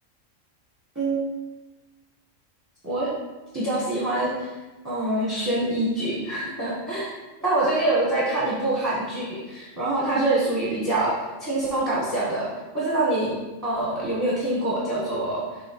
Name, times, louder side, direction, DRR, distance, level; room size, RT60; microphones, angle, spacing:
voice 1, 3.5-4.5 4.8-7.1 7.4-12.5 12.7-15.6, right 2 dB, 15° right, -7 dB, 1.1 m, -25 dB
7.1 x 3.2 x 4.5 m, 1.1 s
omnidirectional pair, 1.3 m